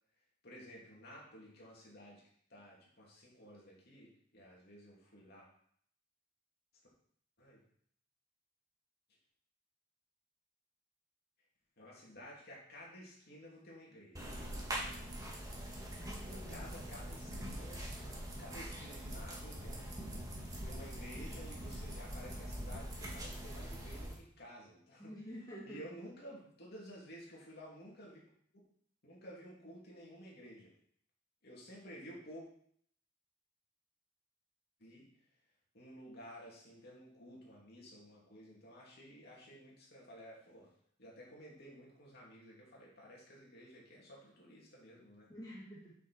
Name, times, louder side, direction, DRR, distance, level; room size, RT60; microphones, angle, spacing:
voice 1, 0.4-2.2 2.5-5.5 7.4-7.6 11.8-14.2 16.2-17.8 18.4-20.2 20.6-25.1 25.6-28.2 29.0-30.7 31.4-32.5 34.8-35.1 35.7-40.7 41.0-45.3, equal, 55° left, -4 dB, 2.8 m, -53 dB
sound 1, 14.1-24.2, equal, 20° right, 1.8 m, -43 dB
voice 2, 16.0-16.8 25.0-25.8 45.3-45.9, equal, 20° left, -6 dB, 2.1 m, -49 dB
7.7 x 6.2 x 4.4 m, 0.63 s
head